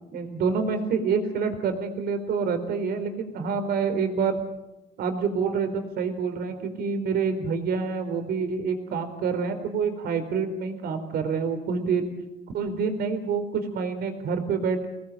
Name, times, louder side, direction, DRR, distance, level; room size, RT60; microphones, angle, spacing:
voice 1, 0.1-4.4 5.0-12.1 12.5-14.9, right 5 dB, 70° right, 7 dB, 4.2 m, -27 dB
25.0 x 19.5 x 7.6 m, 0.98 s
cardioid pair, 110°, 17 cm